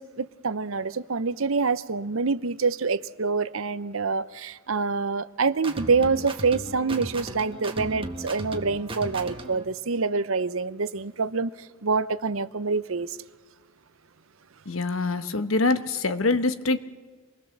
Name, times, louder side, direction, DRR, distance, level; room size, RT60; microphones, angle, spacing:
voice 1, 0.0-11.5 11.8-13.2, right 4 dB, 70° right, 0.8 m, -26 dB
sound 1, 5.6-9.6, right 1 dB, 25° right, 1.7 m, -36 dB
voice 2, 14.6-16.8, left 3 dB, 70° left, 1.2 m, -24 dB
26.5 x 20.0 x 7.3 m
head